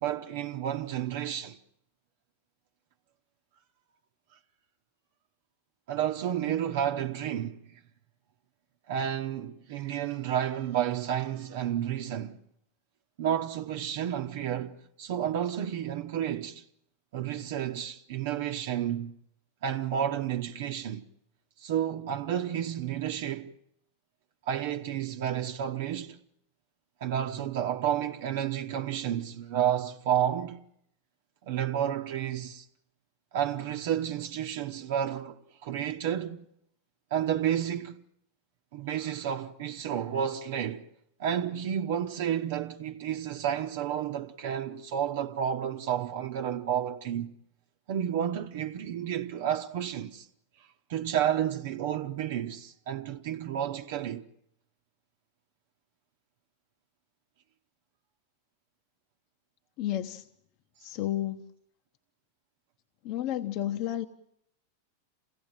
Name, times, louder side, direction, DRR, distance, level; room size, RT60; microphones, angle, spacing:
voice 1, 0.0-1.6 5.9-7.8 8.9-12.4 13.2-16.6 17.1-19.1 19.6-21.0 21.6-23.5 24.5-26.2 27.0-30.6 31.4-32.6 33.3-36.4 37.1-38.0 38.7-40.9 41.2-47.3 47.9-50.3 50.9-54.2, right 10 dB, 65° right, 0.9 m, -31 dB
voice 2, 59.8-60.3 60.8-61.4 63.0-64.1, left 12 dB, 50° left, 1.0 m, -31 dB
27.0 x 17.0 x 9.0 m
hypercardioid pair, 105°, 0 cm